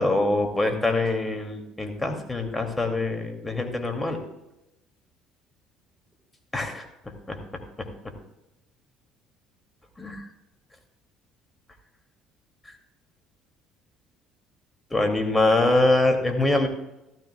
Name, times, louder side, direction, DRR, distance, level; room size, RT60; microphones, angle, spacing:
voice 1, 0.0-4.2 6.5-6.9 7.3-7.4 10.0-10.2 14.9-16.7, left 2 dB, 15° left, 4 dB, 2.6 m, -24 dB
15.5 x 13.5 x 2.3 m, 0.92 s
hypercardioid pair, 65°, 0 cm